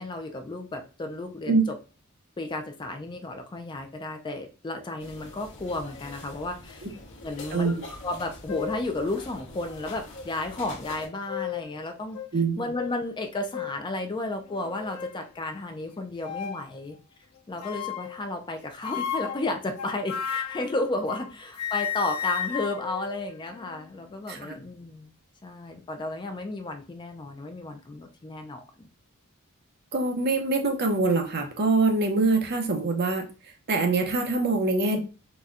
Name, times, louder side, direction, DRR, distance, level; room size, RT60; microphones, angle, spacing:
voice 1, 0.0-1.6 2.4-6.8 7.2-7.7 8.0-12.2 12.6-17.0 17.5-25.1 25.4-28.9, left 2 dB, 20° left, 5 dB, 0.4 m, -33 dB
sound 1, 5.0-11.1, left 2 dB, 60° left, 1.0 m, -44 dB
sound 2, 8.1-8.2 8.5-8.9 9.6-9.7 11.0-11.7 12.1-12.3 12.7-12.9 13.5-13.8 14.5-15.2 16.2-16.7 17.6-18.2 18.8-21.3 21.6-23.9, left 9 dB, 90° left, 0.4 m, -34 dB
voice 2, 12.3-12.6 24.3-24.6 29.9-33.3 33.7-35.0, right 3 dB, 50° right, 3 dB, 0.7 m, -24 dB
4.0 x 2.2 x 2.4 m, 0.34 s
head